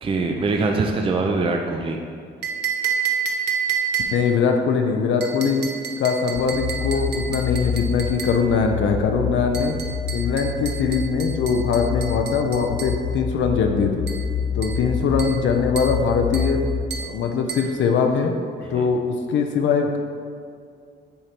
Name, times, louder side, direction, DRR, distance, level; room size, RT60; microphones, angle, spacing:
voice 1, 0.0-2.0 18.7-18.9, right 3 dB, 25° right, 3 dB, 0.5 m, -23 dB
sound 1, 2.4-4.4 5.2-8.4 9.5-13.0 14.1-14.3 14.6-14.9 15.2-15.5 15.8-16.0 16.3-16.6 16.9-17.2 17.5-17.7, right 7 dB, 60° right, 0.8 m, -30 dB
voice 2, 4.1-5.7 6.0-9.7 10.1-14.1 14.5-16.6 17.0-18.3 18.7-20.0, left 5 dB, 70° left, 4 dB, 0.6 m, -21 dB
sound 2, 6.3-16.9, left 6 dB, 35° left, 0.8 m, -28 dB
7.1 x 3.1 x 5.0 m, 2.2 s
cardioid pair, 90°, 20 cm